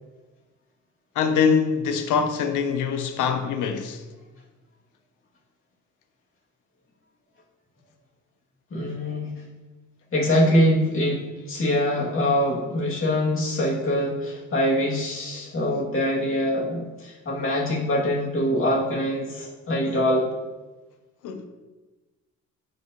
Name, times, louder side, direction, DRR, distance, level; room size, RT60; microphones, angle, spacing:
voice 1, 1.1-4.0 21.2-21.5, left 6 dB, 80° left, 0.9 m, -23 dB
voice 2, 8.7-9.3 10.1-20.3, equal, 45° left, 2.5 m, -24 dB
9.2 x 5.2 x 3.0 m
cardioid pair, 90°, 30 cm